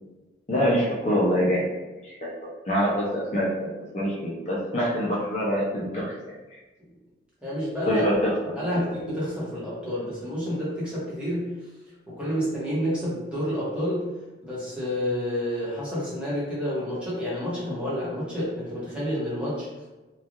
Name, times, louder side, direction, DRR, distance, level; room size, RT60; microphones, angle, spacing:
voice 1, 0.5-1.7 2.0-3.5 3.9-6.3 7.9-8.9, equal, 35° left, -5 dB, 0.5 m, -25 dB
voice 2, 7.4-8.1 8.5-11.5 12.1-14.0 14.4-19.7, equal, 5° right, -9 dB, 0.9 m, -29 dB
3.1 x 2.3 x 2.4 m, 1.1 s
head